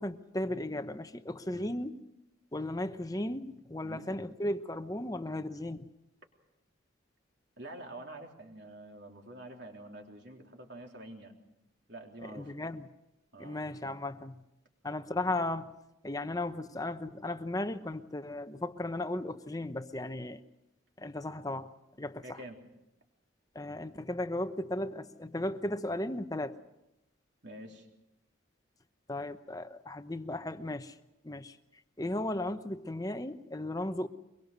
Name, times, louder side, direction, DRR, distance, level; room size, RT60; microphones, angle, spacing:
voice 1, 0.0-1.9 2.5-5.9 12.2-12.9 13.4-14.4 14.8-15.8 16.0-20.4 21.0-21.7 22.0-22.4 23.5-26.6 29.1-31.0 31.2-31.6 32.0-34.1, left 1 dB, 20° left, 10 dB, 0.9 m, -36 dB
voice 2, 3.8-4.1 7.6-11.3 11.9-12.5 13.3-13.6 22.2-22.6 27.4-27.9, right 1 dB, 60° right, 2 dB, 3.5 m, -47 dB
24.0 x 22.5 x 6.8 m, 0.90 s
head